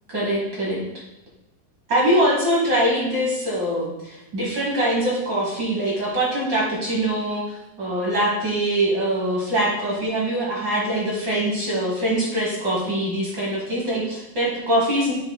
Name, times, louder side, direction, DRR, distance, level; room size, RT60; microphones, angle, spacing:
voice 1, 0.1-0.8 1.9-15.1, right 1 dB, 50° right, -4 dB, 1.4 m, -23 dB
9.0 x 5.7 x 2.2 m, 0.92 s
omnidirectional pair, 3.6 m